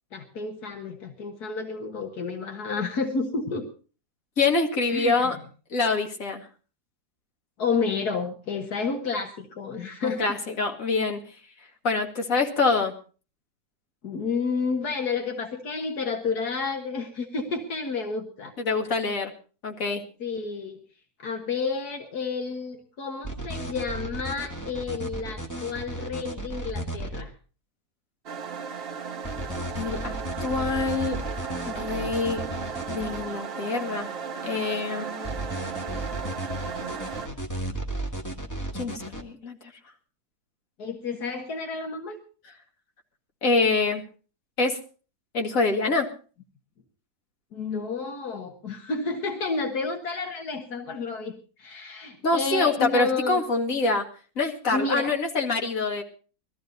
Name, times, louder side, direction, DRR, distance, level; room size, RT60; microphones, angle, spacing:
voice 1, 0.1-3.7 4.9-5.3 7.6-10.4 14.0-18.6 20.2-20.8 21.2-27.3 40.8-42.2 47.5-53.4 54.7-55.1, left 4 dB, 75° left, 3 dB, 2.1 m, -30 dB
voice 2, 4.4-5.4 5.7-6.4 10.0-11.2 11.8-12.9 18.6-19.3 19.6-20.0 29.7-30.1 30.4-31.2 31.7-32.4 32.9-34.1 34.4-35.3 38.7-39.6 43.4-44.0 44.6-44.8 45.3-46.1 52.2-54.0 54.4-56.0, left 3 dB, 60° left, 2 dB, 2.5 m, -25 dB
sound 1, 23.2-27.2 29.2-33.2 35.2-39.2, right 1 dB, 10° left, 1.5 m, -34 dB
sound 2, 28.3-37.3, right 6 dB, 45° right, 1.0 m, -35 dB
20.5 x 13.5 x 3.9 m, 0.37 s
omnidirectional pair, 1.7 m